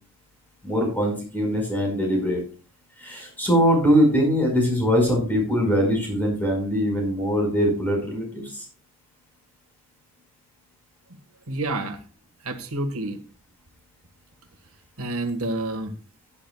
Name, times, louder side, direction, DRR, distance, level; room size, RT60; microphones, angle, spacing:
voice 1, 0.6-2.4 3.0-8.6, equal, 10° left, 0 dB, 5.0 m, -22 dB
voice 2, 11.5-12.0 12.4-13.2 15.0-15.9, right 2 dB, 80° right, 6 dB, 1.6 m, -28 dB
16.0 x 10.0 x 2.3 m, 0.36 s
head